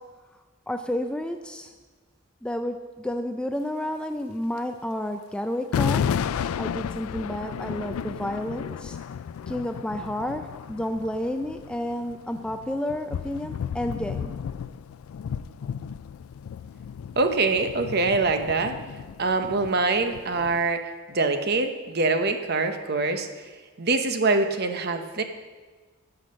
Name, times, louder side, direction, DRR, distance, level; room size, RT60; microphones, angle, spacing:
voice 1, 0.7-1.7 2.4-6.0 6.6-9.0 9.5-10.4 10.7-14.3, left 1 dB, 5° left, 7 dB, 0.3 m, -30 dB
sound 1, 4.6-4.7 5.7-20.7, left 7 dB, 80° left, 0.3 m, -33 dB
voice 2, 17.2-18.8 19.2-20.8 21.1-23.3 23.8-25.2, right 3 dB, 50° right, 7 dB, 0.8 m, -24 dB
11.5 x 6.1 x 6.5 m, 1.3 s
head